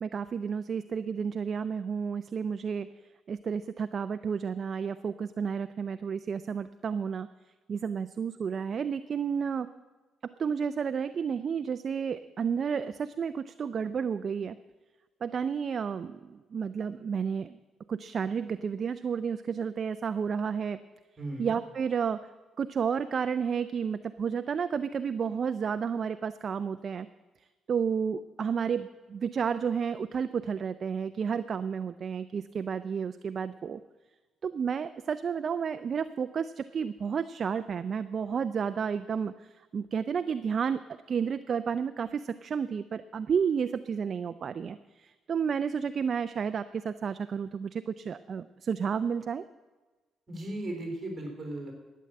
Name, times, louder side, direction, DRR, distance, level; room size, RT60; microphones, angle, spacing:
voice 1, 0.0-2.9 3.3-7.3 7.7-9.7 10.2-14.6 15.2-17.6 17.9-20.8 21.4-22.2 22.6-27.1 27.7-33.8 34.4-40.8 41.1-49.4, right 6 dB, 35° right, 11 dB, 0.3 m, -31 dB
voice 2, 21.2-21.6 50.3-51.7, right 1 dB, 20° right, 2 dB, 3.7 m, -36 dB
12.0 x 9.3 x 7.6 m, 1.2 s
cardioid pair, 165°, 0 cm